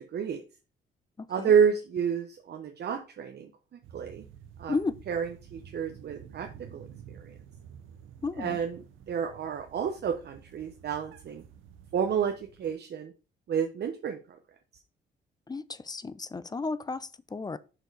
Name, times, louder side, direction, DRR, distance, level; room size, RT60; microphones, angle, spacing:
voice 1, 0.1-0.4 1.3-4.2 4.6-4.7 5.1-7.3 8.4-11.4 11.9-13.1 13.5-14.4, right 7 dB, 55° right, 0.9 m, -30 dB
voice 2, 1.2-1.5 4.7-4.9 8.2-8.6 15.5-17.6, left 3 dB, 20° left, 0.5 m, -33 dB
sound 1, 3.8-12.7, right 8 dB, 85° right, 0.9 m, -51 dB
6.5 x 4.7 x 4.6 m
cardioid pair, 90°, 20 cm